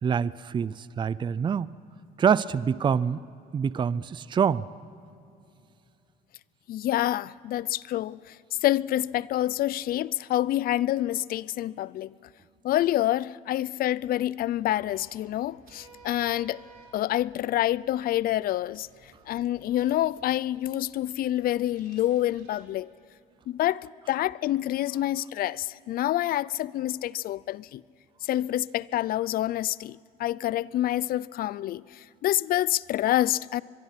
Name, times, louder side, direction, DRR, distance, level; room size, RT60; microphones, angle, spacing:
voice 1, 0.0-1.7 2.2-3.2 3.5-4.7, right 7 dB, 30° right, 0.5 m, -25 dB
voice 2, 6.7-12.2 12.6-16.6 16.9-22.9 23.5-27.8 28.2-33.6, left 13 dB, 60° left, 0.5 m, -27 dB
sound 1, 14.4-22.6, right 4 dB, 65° right, 4.8 m, -56 dB
23.5 x 22.5 x 5.8 m
cardioid pair, 110°, 17 cm